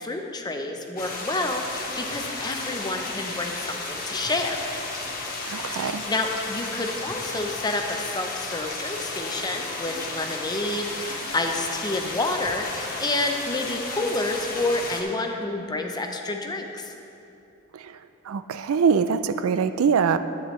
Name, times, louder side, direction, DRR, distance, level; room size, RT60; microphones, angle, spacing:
voice 1, 0.0-4.6 5.7-16.9, left 2 dB, 20° left, 4 dB, 0.6 m, -29 dB
sound 1, 1.0-15.0, left 3 dB, 45° left, 1.2 m, -33 dB
voice 2, 5.4-6.0 17.7-18.0 18.3-20.2, right 6 dB, 75° right, 11 dB, 0.3 m, -23 dB
12.0 x 9.3 x 3.1 m, 2.8 s
head